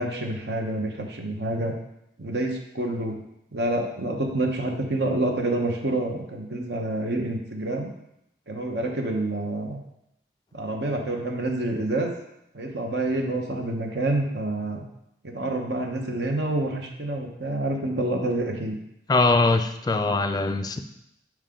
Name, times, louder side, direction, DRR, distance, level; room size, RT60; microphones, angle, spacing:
voice 1, 0.0-1.8 2.2-3.2 3.5-7.9 8.5-9.8 10.5-12.1 12.5-14.8 15.2-18.8, right 2 dB, 65° right, 3 dB, 1.0 m, -27 dB
voice 2, 19.1-20.8, left 3 dB, 20° left, 7 dB, 0.3 m, -22 dB
7.4 x 4.7 x 3.7 m, 0.81 s
head